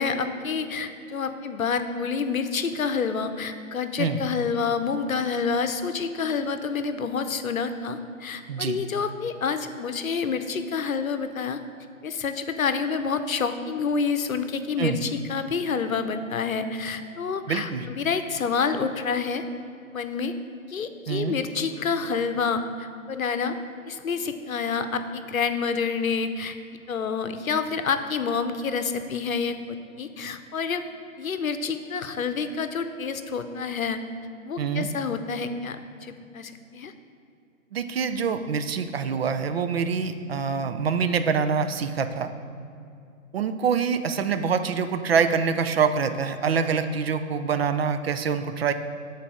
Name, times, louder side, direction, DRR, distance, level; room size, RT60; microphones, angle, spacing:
voice 1, 0.0-11.6 12.0-19.4 19.9-20.3 20.7-23.5 23.8-26.6 26.9-30.8 31.2-34.0 34.4-36.9, left 5 dB, 75° left, 9 dB, 0.7 m, -28 dB
voice 2, 17.5-17.8 21.1-21.3 34.6-34.9 37.7-42.3 43.3-48.7, right 6 dB, 50° right, 9 dB, 0.5 m, -25 dB
8.3 x 4.1 x 6.2 m, 2.4 s
figure-of-eight pair, 135°, 41 cm